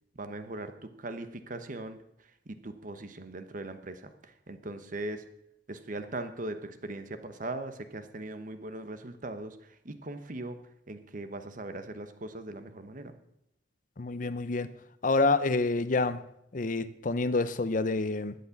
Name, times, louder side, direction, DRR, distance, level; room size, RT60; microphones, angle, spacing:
voice 1, 0.2-2.0 2.5-5.3 5.7-10.6 10.9-13.1, right 2 dB, 50° right, 9 dB, 1.1 m, -40 dB
voice 2, 14.0-14.7 15.0-16.2 16.5-18.4, left 3 dB, 50° left, 14 dB, 0.7 m, -27 dB
12.0 x 8.6 x 7.1 m, 0.79 s
head